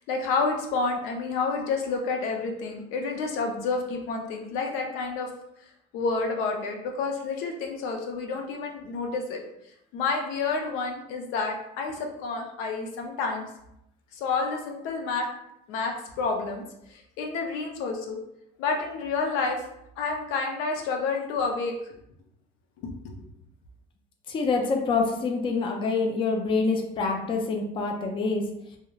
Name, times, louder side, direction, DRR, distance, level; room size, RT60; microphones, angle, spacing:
voice 1, 0.1-5.3 5.9-9.4 9.9-13.5 14.1-15.3 15.7-18.2 18.6-19.6 20.0-21.9 22.8-22.9, left 4 dB, 85° left, 2 dB, 0.5 m, -29 dB
voice 2, 24.3-28.4, left 4 dB, 25° left, 2 dB, 0.3 m, -26 dB
2.7 x 2.1 x 2.2 m, 0.78 s
cardioid pair, 120°, 20 cm